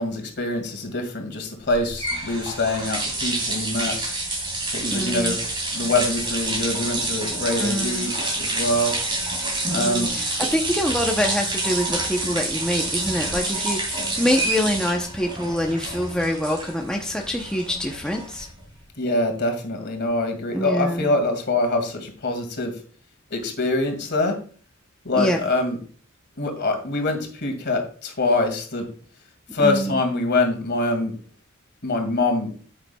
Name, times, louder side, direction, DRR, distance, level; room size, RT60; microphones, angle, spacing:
voice 1, 0.0-4.0 4.7-5.4 5.7-9.0 9.7-10.5 19.0-22.8 23.3-24.4 25.0-25.8 26.4-28.9 29.5-31.2 31.8-32.5, left 2 dB, 55° left, 4 dB, 2.1 m, -24 dB
sound 1, 1.7-18.7, right 2 dB, 25° right, 2.7 m, -28 dB
voice 2, 4.9-5.4 7.6-8.1 9.7-18.5 20.5-21.1 25.2-25.4 29.6-30.0, equal, 5° left, 1 dB, 0.7 m, -25 dB
9.6 x 8.8 x 2.3 m, 0.42 s
head